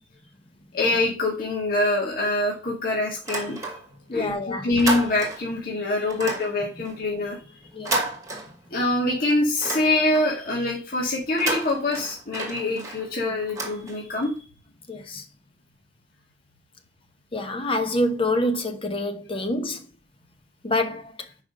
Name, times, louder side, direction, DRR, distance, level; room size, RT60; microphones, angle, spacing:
voice 1, 0.7-3.7 4.1-7.4 8.7-14.3, left 2 dB, 55° left, 1.9 m, -25 dB
sound 1, 3.2-4.1 4.4-5.6 6.1-8.9 9.3-10.4 11.2-14.3, right 2 dB, 20° right, 1.6 m, -32 dB
voice 2, 4.1-4.7 7.7-8.0 14.9-15.2 17.3-19.9 20.6-21.1, left 1 dB, 30° left, 0.9 m, -26 dB
5.7 x 5.0 x 5.3 m
head